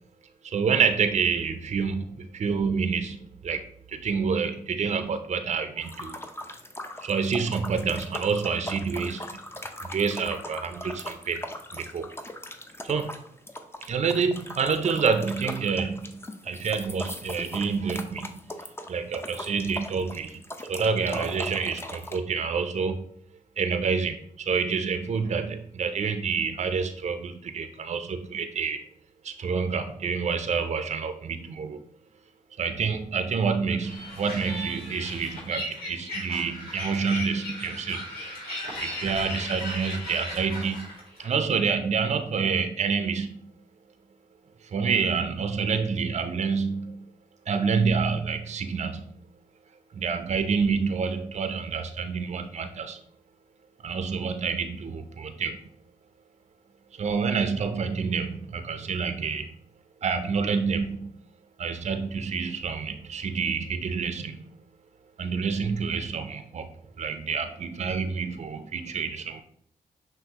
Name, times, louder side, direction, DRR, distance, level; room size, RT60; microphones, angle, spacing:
voice 1, 0.4-3.2 3.4-3.6 3.9-6.2 7.0-9.3 9.8-11.4 11.7-12.1 12.8-13.2 13.9-16.2 16.4-18.5 18.9-20.4 20.7-23.1 23.6-28.8 29.2-31.8 32.6-38.1 38.8-40.9 41.2-43.4 44.6-47.1 47.5-49.1 49.9-53.0 53.8-55.7 56.9-59.5 60.0-61.1 61.6-64.5 65.2-66.7 67.0-69.4, right 5 dB, 45° right, 8 dB, 0.5 m, -28 dB
sound 1, 5.8-22.2, left 1 dB, 15° left, 0.5 m, -39 dB
sound 2, 33.8-41.3, left 1 dB, 80° left, 1.7 m, -36 dB
5.8 x 2.5 x 2.8 m, 0.64 s
supercardioid pair, 45°, 16 cm